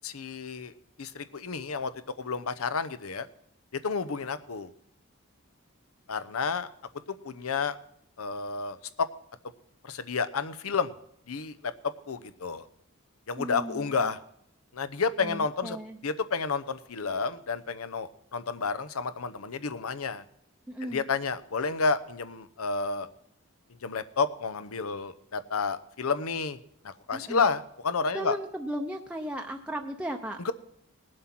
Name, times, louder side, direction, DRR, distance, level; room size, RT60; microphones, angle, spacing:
voice 1, 0.0-0.7 1.0-1.9 2.2-3.3 3.7-4.7 6.1-6.7 7.1-7.8 8.2-9.1 9.8-10.9 11.3-12.7 13.3-14.2 14.7-15.8 16.0-20.2 20.8-23.1 23.8-26.6 26.8-28.4 30.4-30.5, left 4 dB, 85° left, 12 dB, 0.8 m, -30 dB
voice 2, 13.4-14.1 15.2-16.0 20.7-21.0 27.1-27.5 28.1-30.4, right 1 dB, 5° right, 2 dB, 0.6 m, -36 dB
18.5 x 7.7 x 6.0 m, 0.73 s
head